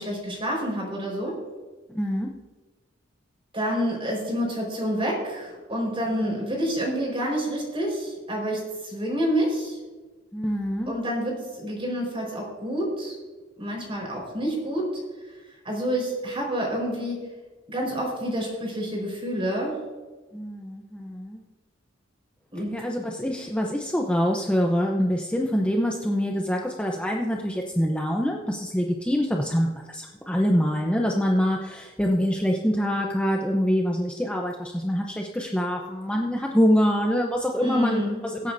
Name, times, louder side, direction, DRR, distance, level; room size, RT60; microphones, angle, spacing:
voice 1, 0.0-1.4 3.5-9.8 10.9-13.1 13.6-15.0 15.6-17.3 17.7-19.8 22.5-22.8 37.6-38.2, equal, 30° right, -2 dB, 4.6 m, -28 dB
voice 2, 1.9-2.3 6.1-6.4 10.3-10.9 20.3-21.4 22.7-38.5, equal, 5° left, 0 dB, 0.7 m, -25 dB
23.5 x 8.5 x 2.6 m, 1.3 s
head